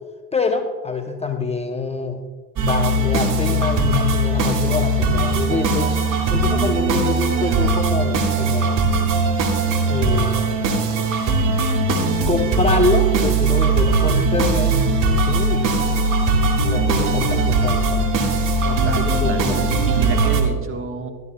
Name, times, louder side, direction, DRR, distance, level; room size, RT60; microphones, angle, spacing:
voice 1, 0.3-2.2 2.6-5.9 6.3-8.9 9.9-10.6 12.3-14.8 15.3-15.8 16.6-18.3 19.0-19.6, left 3 dB, 15° left, 4 dB, 0.7 m, -25 dB
sound 1, 2.6-20.4, right 3 dB, 45° right, 1.9 m, -19 dB
voice 2, 18.6-19.4 19.9-21.1, right 3 dB, 30° right, 4 dB, 1.5 m, -29 dB
13.5 x 12.0 x 2.3 m, 1.4 s
hypercardioid pair, 80°, 44 cm